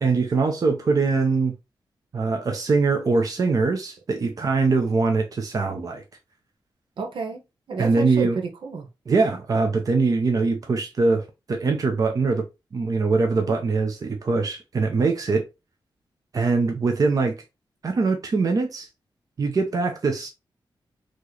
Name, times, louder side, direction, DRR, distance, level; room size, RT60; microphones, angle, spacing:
voice 1, 0.0-1.5 2.1-6.0 7.8-8.4 9.1-12.4 12.7-15.4 16.3-17.4 17.8-18.9 19.4-20.3, right 4 dB, 45° right, 0.8 m, -22 dB
voice 2, 7.0-7.4 7.7-8.9, right 4 dB, 80° right, 1.2 m, -30 dB
4.3 x 3.1 x 3.2 m
wide cardioid pair, 140°, 8 cm